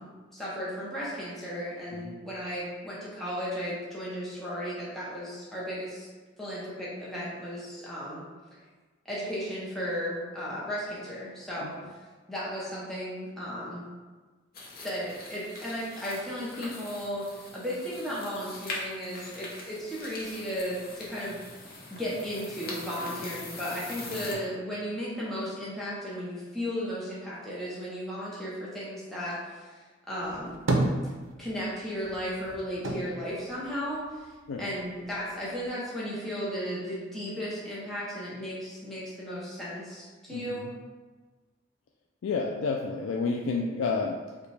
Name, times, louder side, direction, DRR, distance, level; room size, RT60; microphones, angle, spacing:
voice 1, 0.0-6.1 6.4-8.2 9.0-11.8 12.3-13.9 14.8-21.4 21.7-30.6 31.4-34.3 34.6-40.7, equal, ahead, -8 dB, 0.7 m, -35 dB
sound 1, 14.5-24.3, left 2 dB, 50° left, 0.7 m, -42 dB
sound 2, 30.2-31.7 32.0-34.4 34.8-35.7, right 2 dB, 80° right, 0.5 m, -31 dB
voice 2, 40.3-40.7 42.2-44.5, left 4 dB, 85° left, 0 dB, 0.3 m, -31 dB
4.9 x 2.2 x 3.2 m, 1.3 s
head